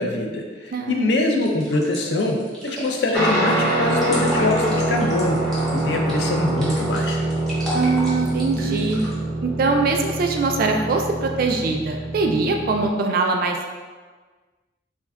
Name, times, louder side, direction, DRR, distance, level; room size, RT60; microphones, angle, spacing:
voice 1, 0.0-7.2, left 2 dB, 60° left, 2 dB, 0.4 m, -23 dB
voice 2, 0.7-1.2 7.7-9.0 9.4-13.7, right 3 dB, 50° right, 3 dB, 0.3 m, -22 dB
sound 1, 1.4-9.1, equal, ahead, 0.7 m, -34 dB
Guitar, 3.1-12.9, right 1 dB, 80° left, 1.2 m, -25 dB
2.5 x 2.2 x 3.4 m, 1.4 s
head